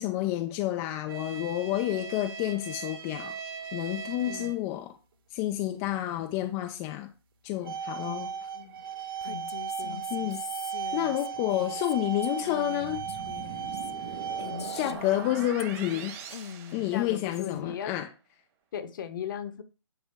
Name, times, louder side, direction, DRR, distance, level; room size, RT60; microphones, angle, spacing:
voice 1, 0.0-3.4 3.7-5.0 5.3-7.1 7.4-8.3 10.1-10.4 10.9-13.0 14.7-16.2 16.7-18.1, left 14 dB, 20° left, 0.4 m, -29 dB
sound 1, 1.1-4.7 5.1-5.3 5.9-6.0 7.3-14.9, right 6 dB, 50° right, 1.7 m, -37 dB
Female speech woman speaking, 9.2-16.0 16.3-17.6, left 7 dB, 65° left, 0.6 m, -44 dB
sound 2, 12.8-17.6, right 7 dB, 30° right, 1.5 m, -42 dB
voice 2, 14.5-15.0 16.9-17.9 18.7-19.6, left 8 dB, 45° left, 1.0 m, -38 dB
9.7 x 3.9 x 3.4 m
figure-of-eight pair, 135°, 15 cm